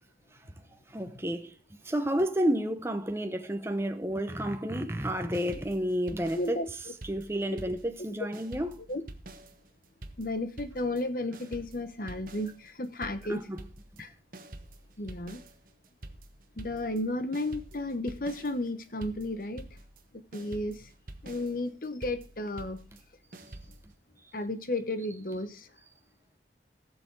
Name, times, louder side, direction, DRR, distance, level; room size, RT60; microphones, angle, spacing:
voice 1, 0.9-6.6 7.0-8.8 13.3-13.6, equal, 15° right, 1.0 m, -31 dB
sound 1, 5.3-8.1 8.3-23.9, right 1 dB, 50° right, 1.2 m, -47 dB
voice 2, 6.4-6.7 8.9-9.0 10.2-13.4 14.0-14.1 15.0-15.4 16.6-19.7 20.1-20.9 21.2-22.8 24.3-25.7, left 1 dB, 50° left, 1.0 m, -33 dB
18.0 x 6.8 x 4.7 m
head